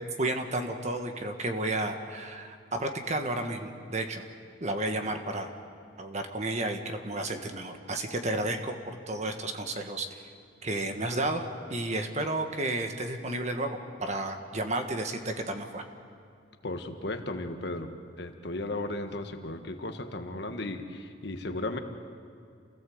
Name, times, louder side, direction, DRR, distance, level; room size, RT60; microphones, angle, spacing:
voice 1, 0.2-4.2 4.6-5.5 6.0-10.1 10.6-15.8, right 2 dB, 40° right, 5 dB, 1.6 m, -32 dB
voice 2, 16.6-21.8, left 2 dB, 65° left, 6 dB, 1.5 m, -35 dB
28.0 x 16.5 x 7.9 m, 2.4 s
head